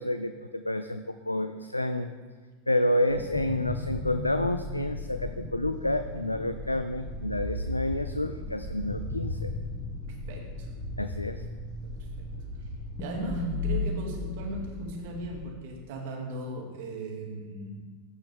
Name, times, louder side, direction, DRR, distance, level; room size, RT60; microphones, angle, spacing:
voice 1, 0.0-2.1 2.7-9.5 11.0-11.4, left 1 dB, 90° left, 9 dB, 0.3 m, -29 dB
sound 1, 3.1-15.5, left 2 dB, 35° left, 1.5 m, -35 dB
voice 2, 10.3-10.7 11.8-12.3 13.0-17.7, right 2 dB, 55° right, 0 dB, 2.2 m, -38 dB
15.0 x 6.3 x 3.5 m, 1.4 s
figure-of-eight pair, 85°, 0 cm